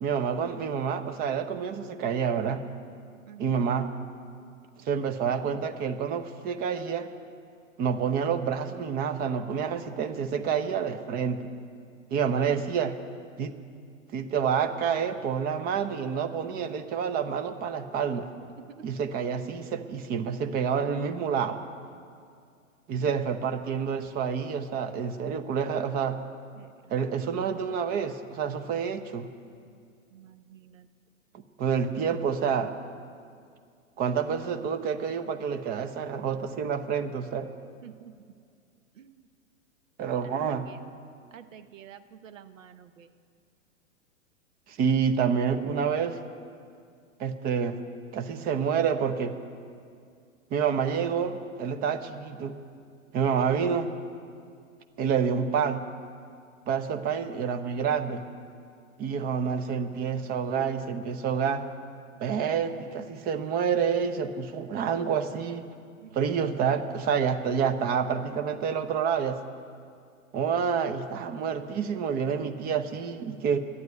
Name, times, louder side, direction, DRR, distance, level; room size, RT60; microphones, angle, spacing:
voice 1, 0.0-2.6 3.4-3.9 4.8-7.1 7.8-11.4 12.1-12.9 13.4-13.5 14.1-18.3 18.8-21.6 22.9-26.2 26.9-29.3 31.3-32.7 34.0-37.5 40.0-40.7 44.7-46.2 47.2-47.8 48.1-49.3 50.5-52.5 53.1-53.9 55.0-55.8 56.7-58.2 59.0-61.6 62.2-65.7 66.1-69.4 70.3-73.6, right 7 dB, 25° right, 9 dB, 0.7 m, -28 dB
voice 2, 3.3-3.6 12.2-12.9 18.1-18.2 18.6-19.0 22.9-23.0 26.6-27.1 30.1-30.9 37.8-38.2 38.9-39.2 40.5-40.8 41.3-43.1 66.0-66.1 66.5-66.6, right 9 dB, 70° right, 11 dB, 0.9 m, -48 dB
12.0 x 9.8 x 9.2 m, 2.3 s
figure-of-eight pair, 110°, 40 cm